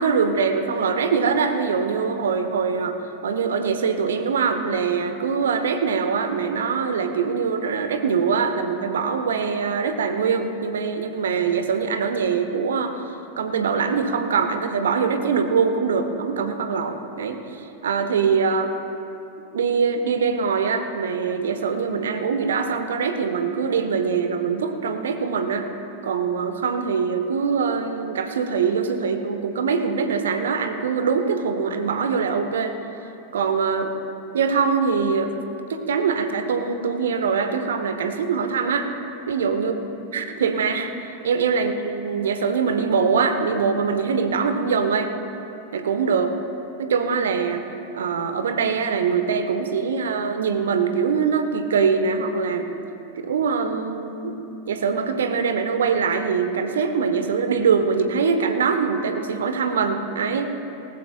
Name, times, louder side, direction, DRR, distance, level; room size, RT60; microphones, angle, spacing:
voice 1, 0.0-3.0 3.2-12.9 13.4-17.4 17.8-18.7 19.5-25.7 26.0-32.7 33.3-33.9 34.3-35.3 35.7-38.9 39.3-39.7 40.1-45.1 45.7-46.3 46.8-47.6 47.9-52.7 53.1-54.4 54.7-60.5, right 5 dB, 65° right, 7 dB, 1.1 m, -23 dB
19.0 x 19.0 x 2.3 m, 2.8 s
figure-of-eight pair, 90°, 0 cm